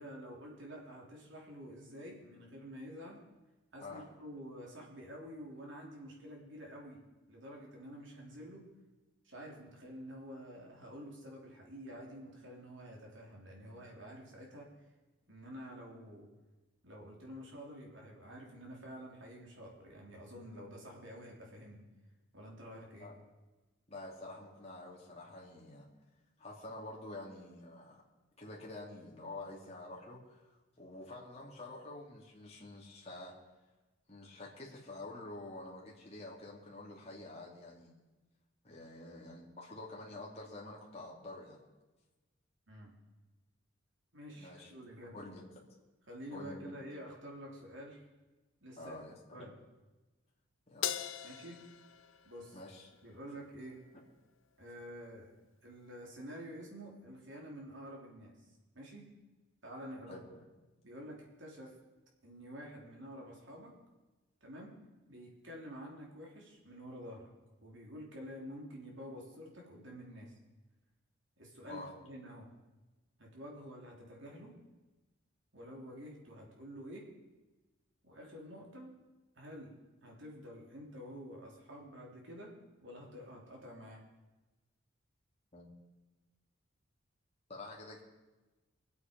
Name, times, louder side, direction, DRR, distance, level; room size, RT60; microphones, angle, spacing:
voice 1, 0.0-3.2 3.7-7.0 7.3-8.7 9.2-14.7 15.3-16.3 16.8-21.8 22.3-23.1 42.7-43.0 44.1-45.2 46.1-48.1 48.6-49.0 49.3-49.5 51.2-51.6 52.2-52.6 53.0-53.8 54.6-55.3 55.6-59.1 59.6-60.2 60.8-61.8 62.2-63.7 64.4-64.7 65.1-67.3 67.6-70.4 71.4-72.5 73.2-74.6 75.5-77.1 78.0-79.0 79.3-82.5 82.8-84.0, equal, 65° right, -1 dB, 3.4 m, -49 dB
voice 2, 23.9-25.9 26.4-28.0 28.4-30.5 30.8-33.4 34.1-38.0 38.6-41.6 44.4-44.7 45.1-45.7 46.3-46.8 48.8-49.5 50.7-51.1 52.5-52.9 53.9-54.0 60.1-60.5 71.7-71.9 85.5-85.7 87.5-88.0, left 2 dB, 30° left, -4 dB, 2.6 m, -48 dB
Crash cymbal, 50.8-53.4, left 10 dB, 75° left, 0.7 m, -41 dB
23.5 x 8.4 x 5.3 m, 1.1 s
head